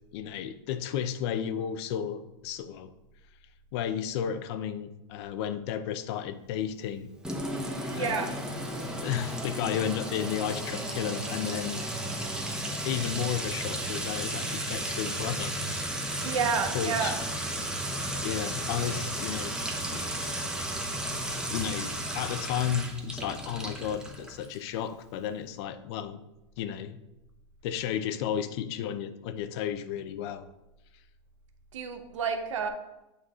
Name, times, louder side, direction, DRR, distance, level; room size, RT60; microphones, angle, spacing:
voice 1, 0.1-2.9 3.7-7.1 7.9-8.4 9.0-11.8 12.8-15.9 16.7-17.2 18.2-19.6 19.9-20.4 21.5-26.2 26.6-27.0 27.6-30.5, left 9 dB, 60° left, 12 dB, 0.7 m, -33 dB
Sink (filling or washing) / Trickle dribble / Fill (with liquid), 7.2-24.7, right 1 dB, 5° right, 1.1 m, -34 dB
voice 2, 7.9-8.3 16.2-17.2 31.7-32.7, right 6 dB, 85° right, 6 dB, 1.0 m, -30 dB
8.4 x 4.6 x 3.7 m, 0.97 s
hypercardioid pair, 120°, 16 cm